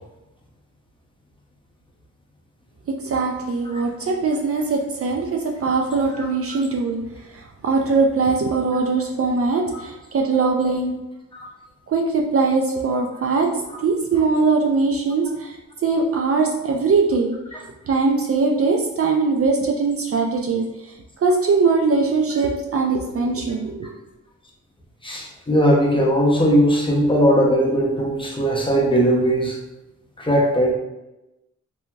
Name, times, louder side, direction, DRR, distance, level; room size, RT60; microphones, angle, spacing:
voice 1, 2.9-7.0 7.6-10.9 11.9-13.5 13.8-15.5 15.8-17.3 17.9-20.6 21.2-23.9, right 4 dB, 45° right, 1 dB, 0.4 m, -21 dB
voice 2, 25.0-29.6 30.2-30.7, equal, 15° left, -2 dB, 0.7 m, -19 dB
2.7 x 2.7 x 2.3 m, 0.98 s
cardioid pair, 70°, 32 cm